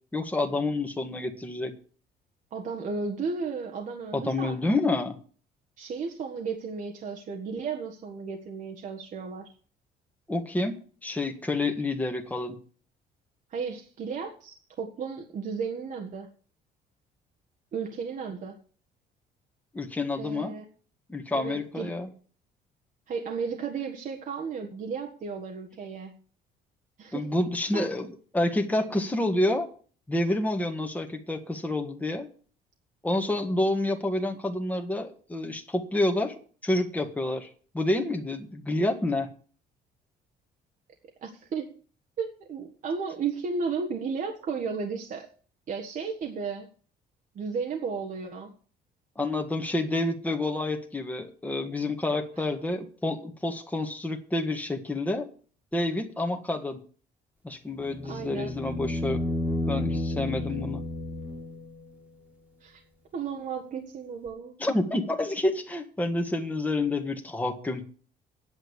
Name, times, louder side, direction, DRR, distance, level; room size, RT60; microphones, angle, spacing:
voice 1, 0.1-1.7 4.1-5.2 10.3-12.6 19.7-20.5 21.1-22.1 27.1-29.7 30.1-32.3 33.0-36.3 36.6-37.5 37.7-39.3 49.2-55.3 55.7-56.8 57.4-59.2 59.7-60.8 64.6-67.8, left 2 dB, 10° left, 4 dB, 1.8 m, -28 dB
voice 2, 2.5-4.8 5.8-9.5 13.5-16.3 17.7-18.6 20.2-20.7 21.3-21.9 23.1-26.1 27.0-27.3 27.7-27.9 41.2-41.7 42.2-45.3 45.7-46.7 47.3-48.5 58.1-58.5 62.6-62.8 63.1-64.6, right 5 dB, 50° right, 3 dB, 1.6 m, -34 dB
sound 1, 57.8-61.9 64.3-64.4, left 1 dB, 10° right, 2.2 m, -31 dB
9.4 x 7.7 x 8.2 m, 0.43 s
cardioid pair, 110°, 17 cm